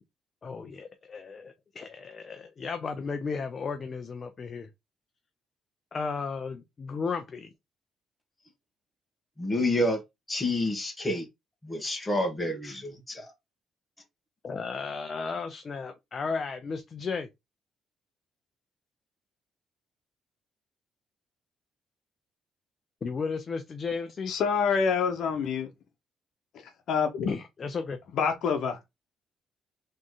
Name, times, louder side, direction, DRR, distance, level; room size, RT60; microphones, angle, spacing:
voice 1, 0.4-4.7 5.9-7.5 14.4-17.3 23.0-24.3 27.2-28.0, left 5 dB, 40° left, 0.6 m, -34 dB
voice 2, 9.4-10.0 10.3-11.2 11.6-13.3, left 1 dB, 15° left, 1.7 m, -28 dB
voice 3, 24.3-25.7 26.9-27.4 28.1-28.8, left 6 dB, 75° left, 1.0 m, -26 dB
3.8 x 3.2 x 3.8 m
cardioid pair, 90°, 0 cm